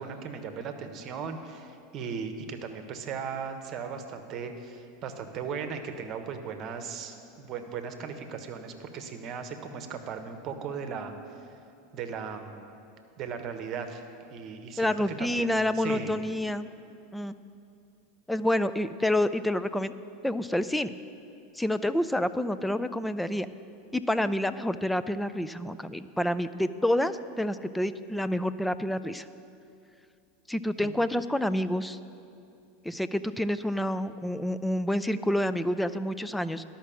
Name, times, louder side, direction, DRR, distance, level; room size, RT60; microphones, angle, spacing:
voice 1, 0.0-11.4 11.9-12.7 13.2-14.0 14.3-16.1 30.8-30.9, right 6 dB, 45° right, 7 dB, 1.1 m, -37 dB
voice 2, 14.8-16.7 17.1-17.3 18.3-19.9 20.2-20.9 21.5-23.5 23.9-29.3 30.5-32.0 32.8-36.6, left 1 dB, 5° left, 12 dB, 0.4 m, -28 dB
12.0 x 5.9 x 7.2 m, 2.5 s
hypercardioid pair, 90°, 0 cm